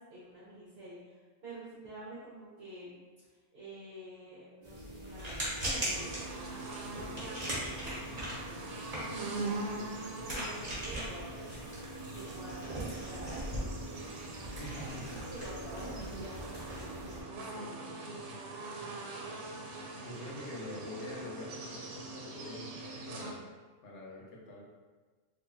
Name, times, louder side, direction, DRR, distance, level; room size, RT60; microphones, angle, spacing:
voice 1, 0.0-3.0 3.5-14.2 15.3-18.0, right 1 dB, 55° right, -10 dB, 1.1 m, -49 dB
sound 1, 4.6-17.2, equal, 35° right, 1.3 m, -40 dB
sound 2, 5.9-23.3, right 2 dB, 85° right, 1.0 m, -43 dB
voice 2, 8.1-8.4 14.6-15.2 20.0-23.5 23.8-24.6, left 1 dB, 75° left, -2 dB, 1.1 m, -45 dB
3.7 x 3.0 x 2.7 m, 1.4 s
omnidirectional pair, 1.2 m